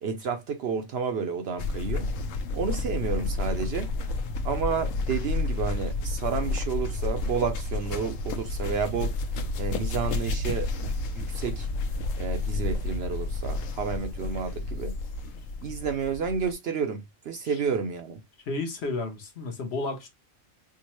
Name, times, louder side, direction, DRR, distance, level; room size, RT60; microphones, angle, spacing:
voice 1, 0.0-2.1 2.5-3.9 4.4-9.1 9.5-11.7 12.2-15.0 15.6-18.2, right 6 dB, 65° right, 0.7 m, -31 dB
sound 1, 1.6-16.5, left 3 dB, 80° left, 1.0 m, -31 dB
voice 2, 18.5-20.1, left 3 dB, 60° left, 1.0 m, -32 dB
4.6 x 2.2 x 2.9 m
omnidirectional pair, 1.3 m